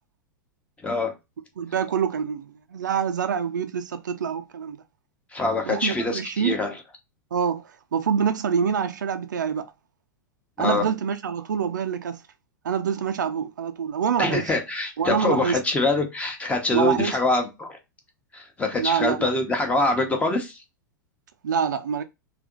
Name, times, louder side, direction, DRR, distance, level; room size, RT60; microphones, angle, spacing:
voice 1, 0.8-1.1 5.3-6.7 10.6-10.9 14.2-17.8 18.3-20.6, left 2 dB, 10° left, 0.9 m, -24 dB
voice 2, 1.6-4.8 5.7-6.5 7.3-9.7 10.6-12.2 12.6-14.5 15.0-15.6 16.7-17.2 18.8-19.3 21.4-22.0, right 7 dB, 65° right, 0.5 m, -26 dB
3.3 x 2.9 x 3.7 m
figure-of-eight pair, 95°, 11 cm